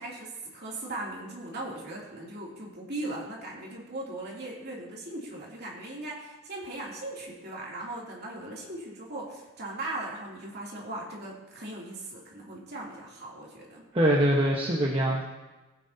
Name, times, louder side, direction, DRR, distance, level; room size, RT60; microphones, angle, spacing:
voice 1, 0.0-13.8, right 2 dB, 50° right, -4 dB, 2.9 m, -38 dB
voice 2, 13.9-15.2, right 1 dB, 25° right, -4 dB, 1.2 m, -23 dB
18.0 x 9.5 x 2.8 m, 1.1 s
head